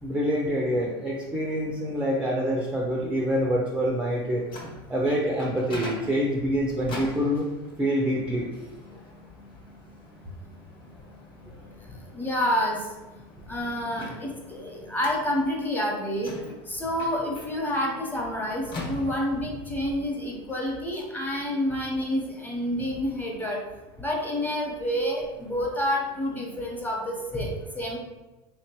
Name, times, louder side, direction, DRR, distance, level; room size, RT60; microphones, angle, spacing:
voice 1, 0.0-4.4 4.9-7.5 7.8-8.5, equal, 5° right, -1 dB, 0.4 m, -26 dB
Microwave oven, 4.1-19.6, left 2 dB, 40° left, 1.1 m, -44 dB
voice 2, 12.1-12.8 13.5-16.4 16.7-23.6 24.0-27.5 27.7-28.0, equal, 10° left, -2 dB, 0.9 m, -28 dB
3.5 x 2.9 x 3.0 m, 1.1 s
supercardioid pair, 120°, 14 cm